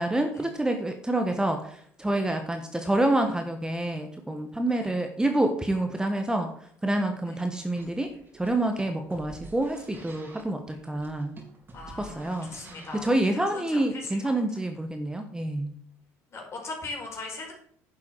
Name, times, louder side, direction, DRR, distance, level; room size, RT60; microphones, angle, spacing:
voice 1, 0.0-6.5 6.8-11.3 12.0-12.5 12.9-15.7, right 1 dB, 10° right, 5 dB, 1.3 m, -27 dB
sound 1, 7.7-13.1, right 3 dB, 30° right, 3.9 m, -49 dB
voice 2, 11.7-13.1 13.5-14.4 16.3-17.5, left 3 dB, 45° left, 0 dB, 4.7 m, -39 dB
10.0 x 7.0 x 4.7 m, 0.62 s
supercardioid pair, 70°, 7 cm